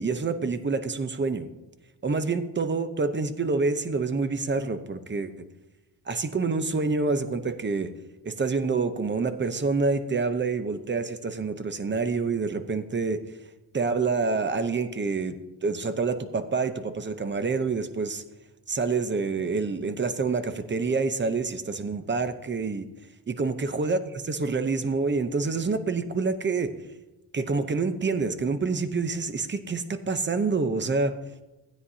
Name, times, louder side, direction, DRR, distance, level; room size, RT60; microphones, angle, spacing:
voice 1, 0.0-1.5 2.0-5.5 6.1-7.9 8.2-13.2 13.7-15.3 15.6-18.2 18.7-22.8 23.3-26.7 27.3-31.1, right 4 dB, 25° right, 10 dB, 0.8 m, -27 dB
16.0 x 9.3 x 2.8 m, 1.1 s
cardioid pair, 110°, 43 cm